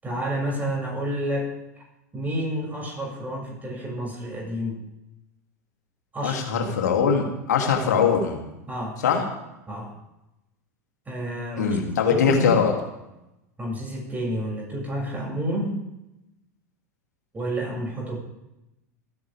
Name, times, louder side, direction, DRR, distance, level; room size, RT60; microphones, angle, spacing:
voice 1, 0.0-1.5 2.1-4.8 6.1-6.4 8.7-9.0 9.7-10.0 11.1-11.8 12.1-12.5 13.6-15.8 17.3-18.2, equal, 20° right, -2 dB, 7.1 m, -29 dB
voice 2, 6.2-8.4 9.0-9.2 11.6-12.7, left 6 dB, 85° left, 1 dB, 3.1 m, -21 dB
28.5 x 10.5 x 3.6 m, 0.92 s
hypercardioid pair, 100°, 9 cm